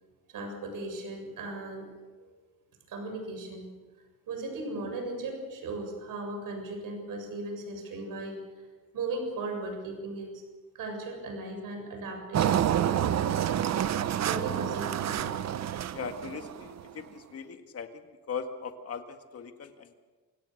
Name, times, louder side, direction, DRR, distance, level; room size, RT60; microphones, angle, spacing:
voice 1, 0.3-1.9 2.2-2.3 2.9-3.7 4.3-8.4 8.9-10.4 10.7-13.2 14.2-15.3, right 2 dB, 75° right, 4 dB, 7.3 m, -37 dB
Engine, 12.3-16.8, right 10 dB, 50° right, 0.8 m, -28 dB
voice 2, 15.9-17.9 18.3-19.9, left 6 dB, 45° left, 6 dB, 2.0 m, -39 dB
27.5 x 17.5 x 6.6 m, 1.4 s
cardioid pair, 145°, 34 cm